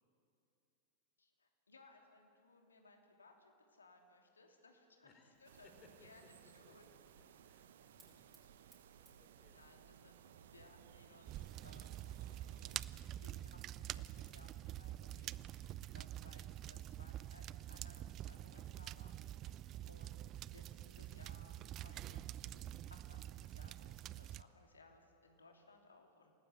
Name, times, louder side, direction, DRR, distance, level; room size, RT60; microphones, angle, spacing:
voice 1, 1.2-5.1 5.4-5.7 6.0-6.9 8.7-8.8 9.2-9.3 9.5-10.2 10.5-12.0 12.6-12.8 13.2-19.2 19.5-26.3, left 3 dB, 75° left, 3 dB, 2.9 m, -64 dB
voice 2, 5.0-8.6 8.9-9.6, left 3 dB, 30° left, 4 dB, 4.2 m, -68 dB
Fire, 5.3-12.8, right 3 dB, 10° right, 5.1 m, -74 dB
sound 1, 5.4-12.8, right 9 dB, 60° right, 1.0 m, -61 dB
sound 2, 11.3-24.4, right 13 dB, 35° right, 0.5 m, -47 dB
28.5 x 18.5 x 8.3 m, 2.5 s
figure-of-eight pair, 90°, 0 cm